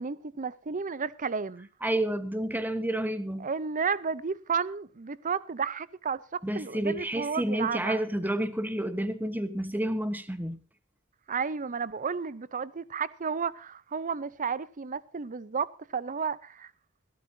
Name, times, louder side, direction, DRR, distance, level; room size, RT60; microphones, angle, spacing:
voice 1, 0.0-1.7 3.4-8.0 11.3-16.7, right 5 dB, 40° right, 0.7 m, -32 dB
voice 2, 1.8-3.5 6.4-10.6, right 1 dB, 10° right, 1.2 m, -30 dB
22.0 x 12.5 x 2.8 m
head